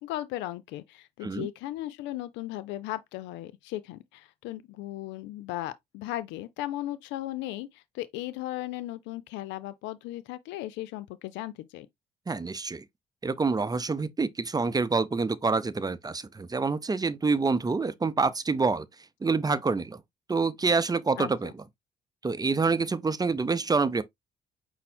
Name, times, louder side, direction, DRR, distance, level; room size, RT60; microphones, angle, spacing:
voice 1, 0.0-11.9 21.2-21.5, left 15 dB, 85° left, 0.4 m, -36 dB
voice 2, 12.3-12.8 13.2-18.9 19.2-20.0 20.3-21.6 22.2-24.0, right 4 dB, 20° right, 0.6 m, -27 dB
5.3 x 2.0 x 4.2 m
supercardioid pair, 60°, 18 cm